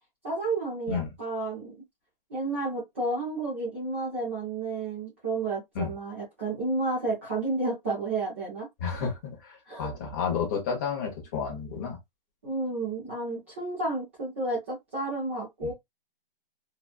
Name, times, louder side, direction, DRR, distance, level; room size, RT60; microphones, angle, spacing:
voice 1, 0.2-1.7 2.3-8.7 9.7-9.9 12.4-15.7, right 3 dB, 15° right, 0.5 m, -31 dB
voice 2, 8.8-12.0 15.6-15.7, left 6 dB, 20° left, 0.8 m, -31 dB
2.9 x 2.3 x 2.3 m
hypercardioid pair, 165°, 29 cm